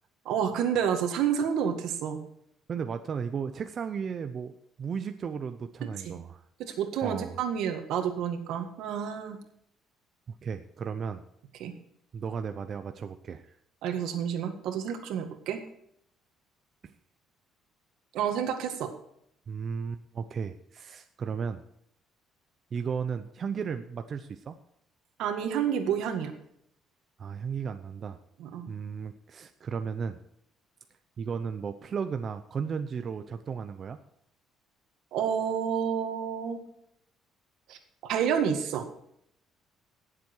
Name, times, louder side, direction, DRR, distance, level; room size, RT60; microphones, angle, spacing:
voice 1, 0.2-2.2 5.8-6.2 6.6-9.4 11.6-11.7 13.8-15.6 18.1-18.9 25.2-26.4 28.4-28.7 35.1-36.6 37.7-38.9, right 8 dB, 75° right, 6 dB, 1.8 m, -29 dB
voice 2, 2.7-4.5 4.8-6.4 7.0-7.4 10.3-11.2 12.1-13.5 16.8-16.9 19.5-21.6 22.7-24.6 27.2-28.2 28.7-30.2 31.2-34.0, right 6 dB, 35° right, 8 dB, 0.6 m, -34 dB
18.0 x 7.6 x 4.6 m, 0.71 s
cardioid pair, 145°, 0 cm